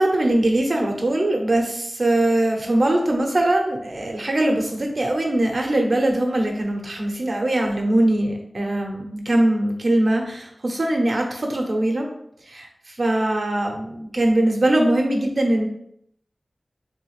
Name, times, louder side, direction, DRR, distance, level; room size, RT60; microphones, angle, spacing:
voice 1, 0.0-12.1 12.5-15.7, right 1 dB, 60° right, 2 dB, 0.7 m, -21 dB
3.4 x 3.2 x 3.2 m, 0.72 s
wide cardioid pair, 60°, 0 cm